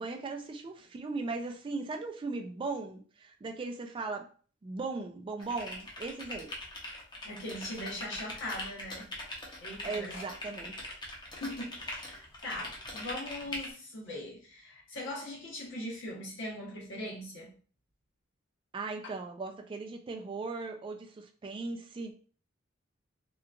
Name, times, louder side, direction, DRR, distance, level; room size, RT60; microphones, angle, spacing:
voice 1, 0.0-4.3 4.6-6.5 9.8-10.8 18.7-22.1, right 3 dB, 25° right, 0.3 m, -38 dB
sound 1, 5.4-13.7, left 1 dB, 20° left, 0.7 m, -41 dB
voice 2, 7.2-9.1 9.6-10.2 11.4-17.5, left 1 dB, 65° left, 1.0 m, -40 dB
2.8 x 2.3 x 2.4 m
head